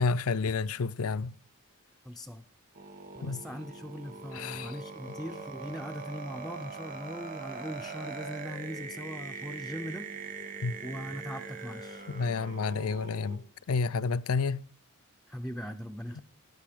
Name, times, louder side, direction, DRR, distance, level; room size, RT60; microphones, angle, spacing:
voice 1, 0.0-1.3 3.2-3.4 4.3-4.7 10.6-10.7 12.1-14.6 16.2-16.3, left 4 dB, 70° left, 0.5 m, -30 dB
voice 2, 2.0-2.4 3.1-10.1 10.8-12.1 15.3-16.2, equal, ahead, 0.5 m, -40 dB
sound 1, 2.8-13.4, right 4 dB, 40° right, 1.6 m, -42 dB
14.5 x 10.5 x 5.0 m
head